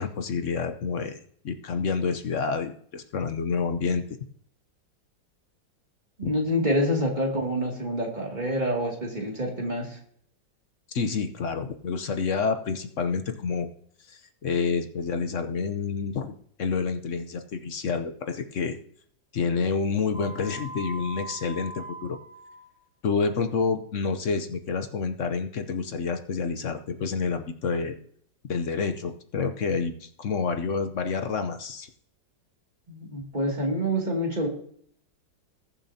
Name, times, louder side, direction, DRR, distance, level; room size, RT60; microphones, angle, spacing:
voice 1, 0.0-4.2 6.2-6.3 10.9-13.7 14.1-16.3 16.6-18.8 19.3-22.2 23.0-28.0 28.5-31.9, left 5 dB, 55° left, 8 dB, 0.9 m, -28 dB
voice 2, 6.2-10.0 32.9-34.5, equal, 25° right, -1 dB, 2.5 m, -27 dB
sound 1, 20.1-22.7, right 1 dB, 30° left, 2.0 m, -41 dB
20.5 x 7.1 x 2.8 m, 0.62 s
omnidirectional pair, 2.0 m